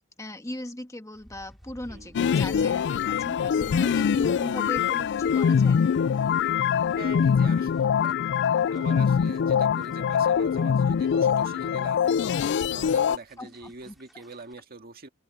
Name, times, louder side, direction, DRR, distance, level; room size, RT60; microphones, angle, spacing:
voice 1, 0.0-5.8 13.4-13.9, left 1 dB, 15° left, 1.4 m, -39 dB
sound 1, 1.1-14.5, equal, ahead, 4.3 m, -54 dB
sound 2, 2.1-13.2, left 7 dB, 55° left, 0.3 m, -23 dB
voice 2, 7.0-7.7 8.0-8.1 8.7-12.1 12.7-15.1, right 3 dB, 45° right, 1.9 m, -44 dB
open air
head